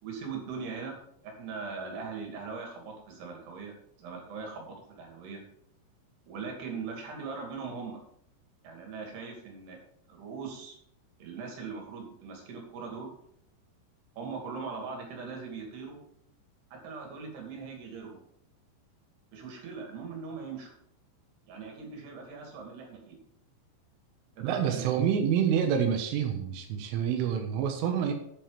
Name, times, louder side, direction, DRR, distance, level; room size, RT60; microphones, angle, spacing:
voice 1, 0.0-1.0 1.2-3.7 4.0-5.4 6.3-8.0 8.6-9.8 10.1-10.8 11.2-13.1 14.2-16.0 16.7-18.2 19.3-20.7 21.5-23.2 24.4-25.0, right 5 dB, 60° right, 1 dB, 4.5 m, -40 dB
voice 2, 24.4-28.1, right 8 dB, 85° right, 4 dB, 3.8 m, -27 dB
9.4 x 9.2 x 5.2 m, 0.71 s
omnidirectional pair, 5.5 m